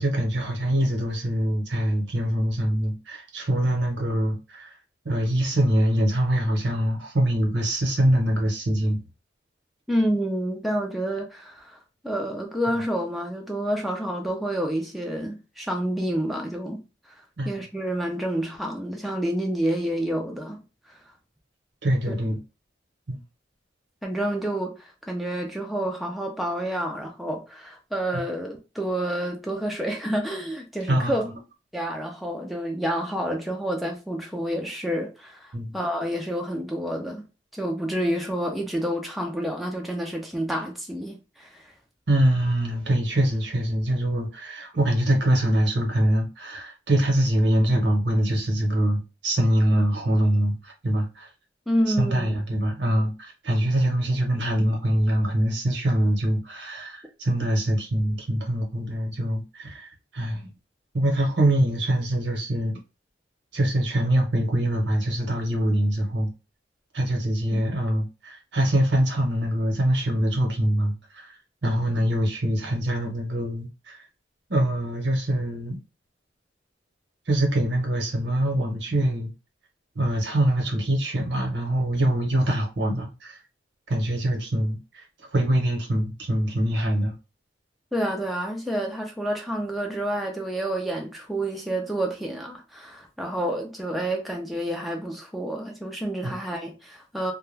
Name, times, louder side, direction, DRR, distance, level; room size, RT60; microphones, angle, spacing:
voice 1, 0.0-4.7 5.0-9.0 17.4-17.6 21.8-22.4 23.1-23.2 30.9-31.3 35.5-35.7 42.1-51.3 51.9-60.4 60.9-62.8 63.5-66.3 66.9-71.3 71.6-74.0 74.5-75.8 77.3-79.3 79.9-83.4 83.9-85.0 85.3-87.1 96.2-96.3, right 1 dB, 70° right, 0.9 m, -24 dB
voice 2, 9.9-11.8 12.0-16.8 17.4-20.6 22.1-22.2 24.0-31.2 31.7-37.2 37.5-41.7 51.7-52.3 67.5-67.6 87.9-97.3, right 1 dB, ahead, 0.4 m, -29 dB
2.3 x 2.2 x 3.1 m
head